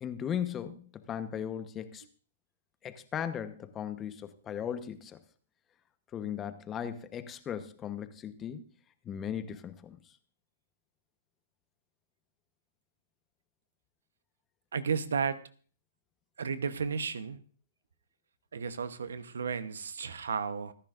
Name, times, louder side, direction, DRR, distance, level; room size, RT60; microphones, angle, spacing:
voice 1, 0.0-2.0 2.8-5.2 6.1-8.7 9.0-10.0, left 9 dB, 20° left, 10 dB, 1.1 m, -37 dB
voice 2, 14.7-15.4 16.4-17.4 18.5-20.7, right 6 dB, 80° right, 13 dB, 1.0 m, -33 dB
25.5 x 10.5 x 2.6 m, 0.43 s
hypercardioid pair, 135°, 0 cm